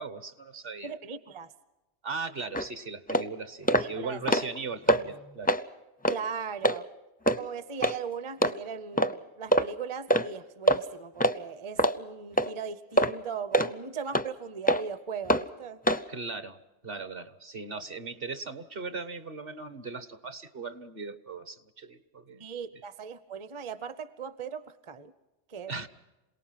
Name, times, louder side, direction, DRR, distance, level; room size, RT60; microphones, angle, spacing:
voice 1, 0.0-0.9 2.0-5.6 16.1-16.6 16.8-22.4 25.7-25.9, right 4 dB, 55° right, 12 dB, 1.4 m, -38 dB
voice 2, 0.8-1.5 3.7-4.5 4.9-5.0 6.1-6.9 7.4-15.8 22.4-25.1 25.5-25.7, right 6 dB, 30° right, 14 dB, 0.7 m, -38 dB
sound 1, 2.5-2.7 3.1-3.3 3.7-3.9 4.2-4.6 4.9-5.0 5.4-5.6 6.0-6.2 6.6-6.8 7.3-7.4 7.8-8.0 8.4-8.5 9.0-9.1 9.5-9.7 10.1-10.3 10.7-10.8 11.2-11.4 11.8-12.0 12.4-12.5 13.0-13.1 13.5-13.7 14.1-14.3 14.7-14.8 15.3-15.4 15.9-16.0, right 1 dB, 10° left, 0.4 m, -23 dB
27.0 x 18.5 x 5.9 m, 1.1 s
omnidirectional pair, 1.1 m